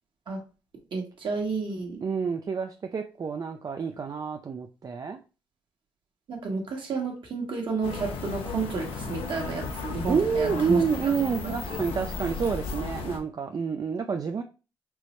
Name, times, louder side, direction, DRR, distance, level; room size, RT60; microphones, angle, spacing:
voice 1, 0.9-2.0 6.3-10.8, right 4 dB, 60° right, 0 dB, 1.3 m, -31 dB
voice 2, 2.0-5.2 10.1-14.4, right 6 dB, 45° right, 5 dB, 0.4 m, -28 dB
sound 1, 7.8-13.2, left 4 dB, 80° left, 0.7 m, -35 dB
4.6 x 2.0 x 3.0 m, 0.33 s
cardioid pair, 60°, 9 cm